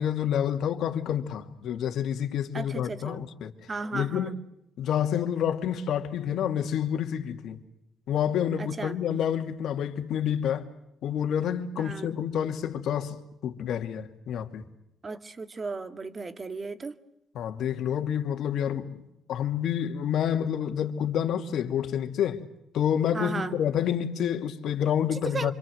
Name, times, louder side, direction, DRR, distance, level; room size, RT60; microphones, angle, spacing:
voice 1, 0.0-3.5 3.9-4.4 4.8-7.6 8.1-10.7 11.0-14.7 17.3-19.0 19.3-22.4 22.7-25.5, left 9 dB, 75° left, 2.6 m, -28 dB
voice 2, 2.5-3.2 3.7-4.3 8.6-9.0 11.8-12.2 15.0-16.9 23.1-23.5 25.3-25.5, right 3 dB, 30° right, 2.1 m, -35 dB
26.5 x 25.5 x 8.0 m
cardioid pair, 90°, 0 cm